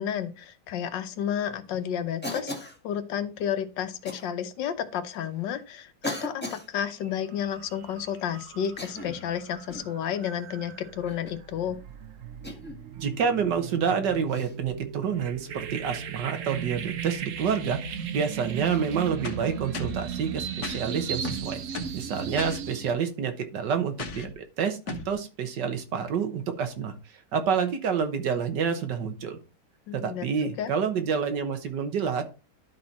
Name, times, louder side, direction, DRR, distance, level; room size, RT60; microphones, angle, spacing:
voice 1, 0.0-11.8 29.9-30.3 30.6-30.7, left 9 dB, 85° left, 10 dB, 1.6 m, -31 dB
Cough, 2.2-2.8 4.0-4.2 5.1-5.2 6.0-6.7 8.6-9.3 9.7-10.0 11.1-11.4 12.4-12.8 14.3-14.5 16.8-16.9 18.6-18.8, left 1 dB, 5° left, 1.3 m, -37 dB
sound 1, 6.9-7.1 7.5-22.9, right 8 dB, 55° right, 1.0 m, -37 dB
voice 2, 13.0-21.6 21.9-26.9 27.3-29.4 30.0-32.2, right 6 dB, 75° right, 8 dB, 1.7 m, -28 dB
sound 2, 19.2-20.1 20.6-20.8 21.2-22.0 22.4-22.6 24.0-24.3 24.9-25.1, left 4 dB, 65° left, 1.5 m, -36 dB
11.5 x 4.4 x 4.1 m, 0.31 s
omnidirectional pair, 1.9 m